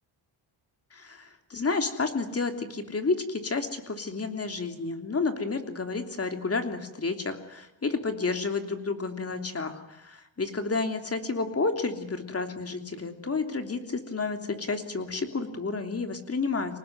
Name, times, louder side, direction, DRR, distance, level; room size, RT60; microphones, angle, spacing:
voice 1, 0.9-16.8, left 4 dB, 30° left, 7 dB, 3.2 m, -31 dB
25.5 x 19.0 x 9.5 m, 0.92 s
cardioid pair, 115°, 47 cm